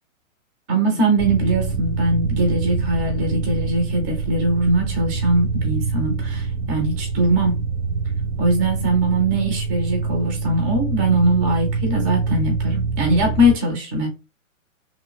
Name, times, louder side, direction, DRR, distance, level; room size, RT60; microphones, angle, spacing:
voice 1, 0.7-7.6 8.4-14.1, right 1 dB, 10° right, 0.4 m, -21 dB
sound 1, 1.2-13.6, right 4 dB, 85° right, 1.0 m, -25 dB
3.0 x 2.7 x 2.2 m
hypercardioid pair, 125°, 41 cm